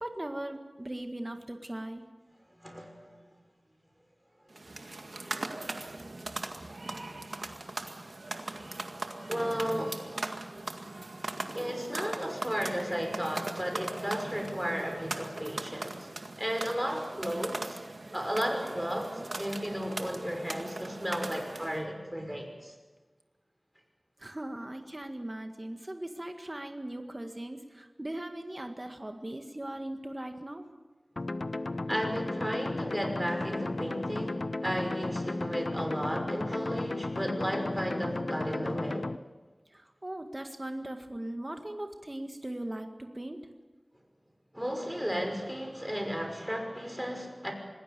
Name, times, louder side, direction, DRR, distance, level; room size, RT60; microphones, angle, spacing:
voice 1, 0.0-2.0 24.2-30.7 39.7-43.4, right 1 dB, 30° right, 5 dB, 1.8 m, -39 dB
voice 2, 2.5-3.2 4.9-5.1 9.3-9.9 11.5-16.1 16.4-17.8 18.1-22.7 31.9-39.1 44.5-47.5, equal, 5° right, 3 dB, 5.8 m, -34 dB
sound 1, 4.5-21.8, right 2 dB, 65° right, 1.9 m, -40 dB
sound 2, 31.2-39.2, left 2 dB, 60° left, 0.6 m, -34 dB
26.5 x 20.0 x 6.9 m, 1.2 s
wide cardioid pair, 60°, 0 cm